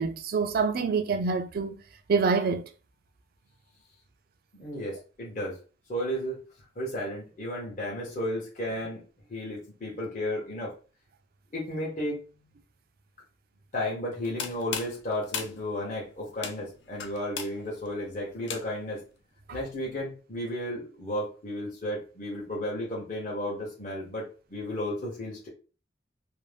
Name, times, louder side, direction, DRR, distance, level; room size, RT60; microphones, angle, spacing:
voice 1, 0.0-1.8 2.1-2.7, right 5 dB, 50° right, 0.4 m, -26 dB
voice 2, 4.5-5.6 5.9-6.4 6.8-9.0 9.3-10.7 11.5-12.2 13.7-19.0 19.5-25.5, left 1 dB, 40° left, 0.8 m, -33 dB
sound 1, 14.1-19.0, left 6 dB, 70° left, 0.5 m, -38 dB
2.6 x 2.0 x 3.2 m
head